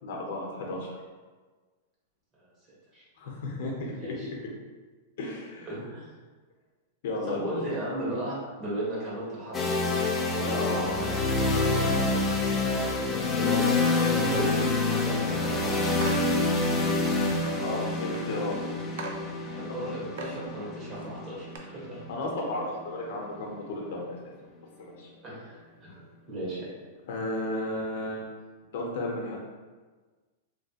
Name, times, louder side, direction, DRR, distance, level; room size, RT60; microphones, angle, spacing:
voice 1, 0.0-0.9 3.2-4.1 5.2-5.7 7.0-7.6 10.4-11.1 11.5-12.2 17.6-18.6 22.1-24.2 24.8-25.1 25.9-26.0 27.1-28.2 28.7-29.4, left 2 dB, 65° left, -1 dB, 0.7 m, -33 dB
voice 2, 5.7-6.1 7.3-11.1 13.2-16.1 19.4-22.0 25.2-25.6 26.3-26.7, right 1 dB, 25° right, -7 dB, 1.3 m, -36 dB
sound 1, 9.5-23.4, left 3 dB, 15° left, 0.4 m, -27 dB
sound 2, 16.0-16.3 17.0-17.1 17.5-17.6 18.1-18.2 18.6-18.7 19.0-19.2 19.7-19.8 20.2-20.4 20.9-21.1 21.5-21.6, right 4 dB, 65° right, 0.5 m, -38 dB
3.2 x 2.8 x 2.8 m, 1.4 s
supercardioid pair, 145°, 0 cm